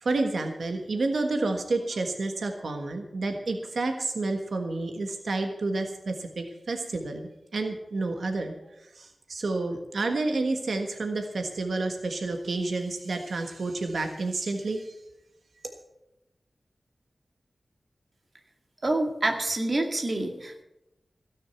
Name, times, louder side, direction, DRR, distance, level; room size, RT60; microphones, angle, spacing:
voice 1, 0.0-8.6 8.8-14.9, right 3 dB, 80° right, 5 dB, 1.5 m, -30 dB
voice 2, 18.8-20.6, right 2 dB, 40° right, 3 dB, 2.0 m, -27 dB
16.5 x 6.6 x 8.2 m, 0.91 s
wide cardioid pair, 105°, 0 cm